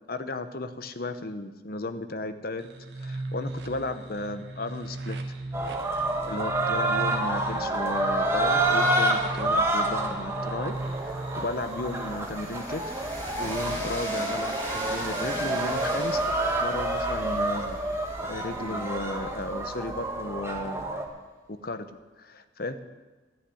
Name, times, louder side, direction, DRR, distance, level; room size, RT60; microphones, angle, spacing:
voice 1, 0.1-2.7 3.0-5.2 6.3-10.8 11.0-13.0 13.4-16.3 16.6-17.8 18.3-20.9 21.6-21.9 22.2-22.8, left 2 dB, 55° left, 11 dB, 0.8 m, -34 dB
sound 1, 2.6-12.1, right 2 dB, 70° right, 1.5 m, -38 dB
sound 2, 5.5-21.0, right 2 dB, 15° right, 1.3 m, -28 dB
Train, 10.7-20.6, equal, 10° left, 3.9 m, -40 dB
14.0 x 6.7 x 9.8 m, 1.3 s
head